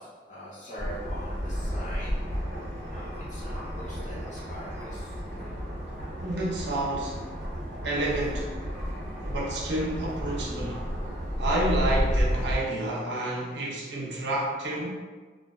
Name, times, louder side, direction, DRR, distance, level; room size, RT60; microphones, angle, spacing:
voice 1, 0.0-2.1 2.9-5.2, equal, 45° left, -9 dB, 0.9 m, -43 dB
sound 1, 0.8-12.6, equal, 50° right, 1.1 m, -32 dB
voice 2, 6.2-7.2 7.8-8.5 9.2-10.8 11.4-14.9, right 1 dB, 75° right, -3 dB, 0.5 m, -29 dB
2.5 x 2.2 x 2.3 m, 1.4 s
head